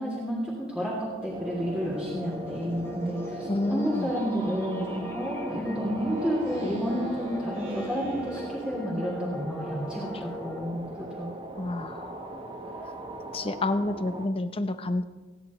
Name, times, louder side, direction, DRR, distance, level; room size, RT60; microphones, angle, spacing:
voice 1, 0.0-11.3, equal, 5° right, -6 dB, 2.9 m, -31 dB
sound 1, 1.0-10.6, equal, 10° left, 1.3 m, -41 dB
sound 2, 1.3-14.3, right 1 dB, 25° right, 1.1 m, -39 dB
voice 2, 3.5-4.1 11.6-12.3 13.3-15.0, left 2 dB, 25° left, 10 dB, 0.6 m, -29 dB
Speech synthesizer, 5.9-8.9, right 1 dB, 65° right, 5.8 m, -41 dB
26.0 x 11.0 x 3.1 m, 1.3 s
head